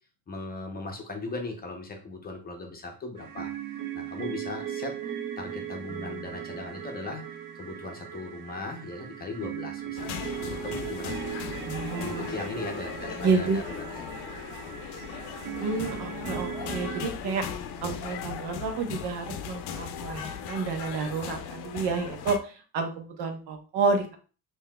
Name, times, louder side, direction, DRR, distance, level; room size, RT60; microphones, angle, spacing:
voice 1, 0.3-3.5 3.9-5.0 5.4-7.2 7.5-11.3 11.9-14.0, left 3 dB, 25° left, 3 dB, 0.6 m, -38 dB
sound 1, 3.2-17.1, right 9 dB, 60° right, 0.6 m, -38 dB
sound 2, 10.0-22.4, left 8 dB, 80° left, 0.5 m, -38 dB
voice 2, 11.7-12.3 13.2-13.6 15.6-17.5 17.8-20.2 20.5-24.2, right 4 dB, 85° right, 5 dB, 0.9 m, -29 dB
5.4 x 2.7 x 2.2 m, 0.36 s
cardioid pair, 155°, 39 cm